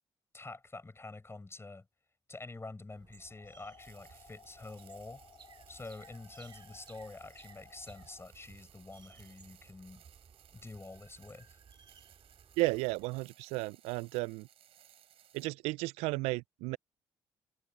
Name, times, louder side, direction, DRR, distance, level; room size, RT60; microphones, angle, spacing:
voice 1, 0.3-1.9 2.3-5.2 5.7-10.0 10.5-11.6, left 3 dB, 25° left, 5.9 m, -47 dB
sound 1, 2.9-13.1, right 6 dB, 45° right, 2.6 m, -60 dB
sound 2, 3.2-8.2, left 6 dB, 45° left, 4.5 m, -59 dB
sound 3, 3.8-15.5, right 11 dB, 65° right, 3.6 m, -62 dB
voice 2, 12.6-14.5 15.3-16.8, right 22 dB, 80° right, 0.4 m, -33 dB
hypercardioid pair, 55°, 11 cm